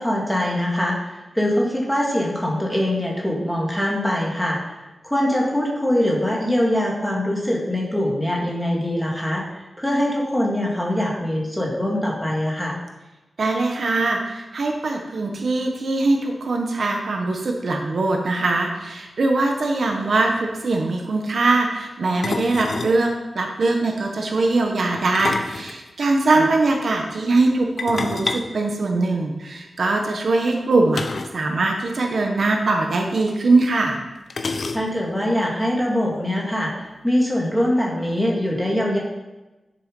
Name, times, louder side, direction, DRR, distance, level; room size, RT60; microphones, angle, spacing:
voice 1, 0.0-9.4 9.8-12.8 26.4-26.5 34.7-39.0, left 1 dB, 5° left, -2 dB, 2.3 m, -23 dB
voice 2, 13.4-31.0 31.3-34.0, right 3 dB, 55° right, 2 dB, 1.3 m, -21 dB
sound 1, 19.9-20.0 20.2-20.4 22.2-23.0 24.9-26.4 27.8-29.4 30.9-31.4 31.7-31.8 32.1-32.3 33.3-33.4 34.3-35.1, left 3 dB, 55° left, 0.7 m, -29 dB
10.5 x 6.8 x 5.4 m, 1.1 s
wide cardioid pair, 155°, 0 cm